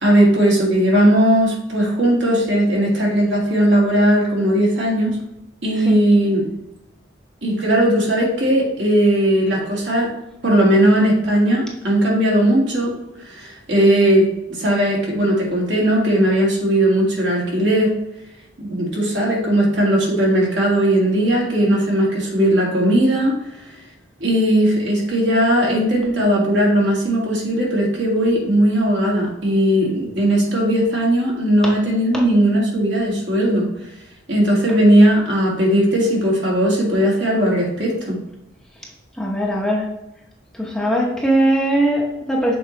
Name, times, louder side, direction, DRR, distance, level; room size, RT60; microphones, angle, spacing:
voice 1, 0.0-5.2 5.6-6.4 7.4-10.1 10.4-12.9 13.2-18.0 18.6-23.3 24.2-33.7 34.3-38.2, right 1 dB, 70° right, -3 dB, 2.1 m, -17 dB
voice 2, 39.2-39.9 40.5-42.6, right 1 dB, 5° left, -3 dB, 0.9 m, -20 dB
6.8 x 4.6 x 3.1 m, 0.88 s
head